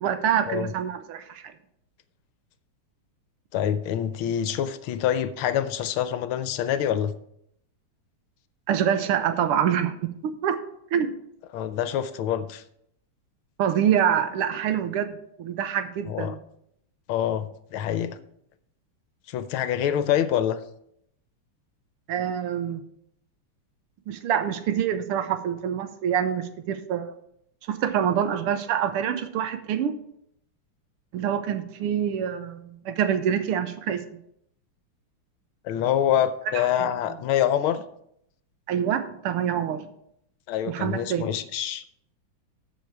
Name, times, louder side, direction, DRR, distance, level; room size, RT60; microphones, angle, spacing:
voice 1, 0.0-1.5 8.7-10.6 10.9-11.1 13.6-16.4 22.1-22.8 24.1-27.1 27.7-30.0 31.1-34.2 36.6-36.9 38.7-39.9 40.7-41.3, right 9 dB, 85° right, 10 dB, 1.7 m, -26 dB
voice 2, 3.5-7.1 11.5-12.6 16.1-16.3 17.1-18.2 19.3-20.6 35.6-37.8 40.5-41.8, left 10 dB, 75° left, 12 dB, 1.4 m, -26 dB
13.5 x 5.0 x 4.6 m, 0.73 s
omnidirectional pair, 2.4 m